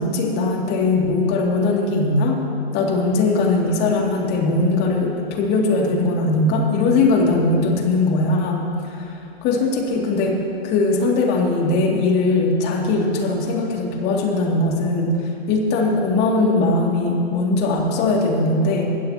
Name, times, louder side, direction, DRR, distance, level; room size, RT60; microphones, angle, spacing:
voice 1, 0.0-2.4 2.7-9.1 9.4-10.4 10.6-18.9, left 2 dB, 35° left, -1 dB, 2.6 m, -20 dB
22.5 x 15.5 x 3.0 m, 2.6 s
hypercardioid pair, 125°, 30 cm